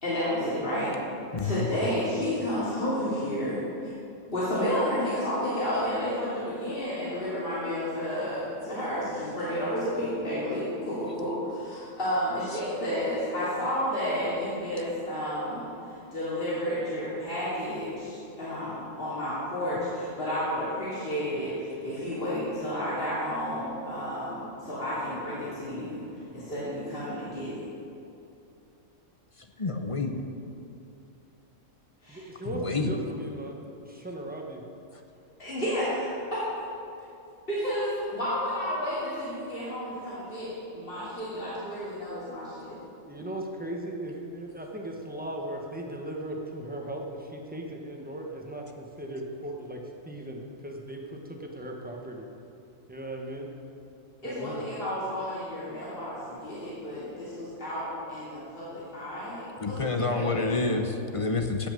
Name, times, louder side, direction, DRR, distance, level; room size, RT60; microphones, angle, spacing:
voice 1, 0.0-1.0 1.4-3.6 4.3-26.0 26.3-27.6 32.0-32.2 35.4-36.1 37.5-42.8 54.2-60.7, equal, 45° left, -10 dB, 3.1 m, -31 dB
voice 2, 1.3-1.7 29.4-30.1 32.4-32.9 59.6-61.7, left 3 dB, 30° left, 4 dB, 0.8 m, -28 dB
voice 3, 32.1-34.6 42.8-52.3 52.9-53.5 54.2-54.6, right 1 dB, 5° right, 0 dB, 1.3 m, -37 dB
17.0 x 6.0 x 6.8 m, 2.7 s
omnidirectional pair, 1.3 m